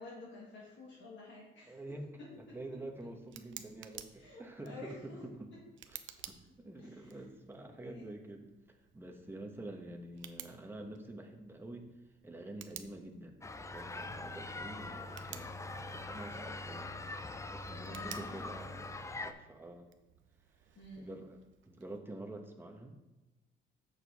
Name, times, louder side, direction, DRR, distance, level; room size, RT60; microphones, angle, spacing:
voice 1, 0.0-1.8 2.5-2.6 4.2-5.2 6.8-7.2 7.7-8.2 17.8-18.4 20.7-21.3, left 2 dB, 70° left, -5 dB, 2.1 m, -50 dB
voice 2, 1.7-5.5 5.9-6.0 6.2-11.9 12.2-17.0 17.4-19.9 21.0-21.4 21.6-23.0, right 2 dB, 10° right, 3 dB, 1.1 m, -48 dB
Tick, 2.3-22.0, right 11 dB, 70° right, 0.6 m, -55 dB
sound 1, 13.4-19.3, left 2 dB, 15° left, 0.5 m, -43 dB
6.8 x 6.7 x 4.1 m, 1.1 s
cardioid pair, 90°, 20 cm